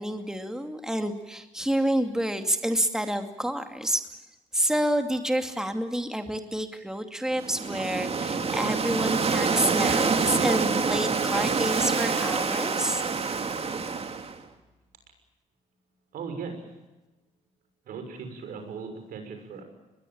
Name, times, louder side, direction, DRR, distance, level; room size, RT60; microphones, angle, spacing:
voice 1, 0.0-4.1 4.5-13.0, right 1 dB, 5° right, 6 dB, 2.5 m, -28 dB
sound 1, 7.3-14.4, right 5 dB, 45° right, 2.9 m, -26 dB
voice 2, 16.1-16.8 17.8-19.6, right 5 dB, 75° right, 6 dB, 6.3 m, -38 dB
23.0 x 21.0 x 8.8 m, 1.1 s
supercardioid pair, 65°, 15 cm